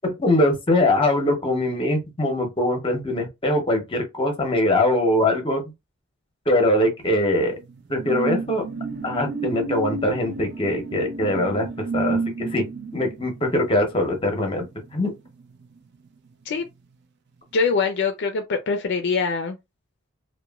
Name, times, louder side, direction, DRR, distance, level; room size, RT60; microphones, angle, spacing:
voice 1, 0.2-5.6 6.5-7.6 7.9-8.6 9.0-11.7 11.9-12.6 12.9-14.6 14.9-15.1, left 1 dB, 25° left, 0.7 m, -22 dB
sound 1, 7.1-16.1 16.4-16.7, right 4 dB, 55° right, 0.5 m, -32 dB
voice 2, 17.5-19.6, left 5 dB, 60° left, 0.4 m, -23 dB
2.9 x 2.1 x 2.3 m
head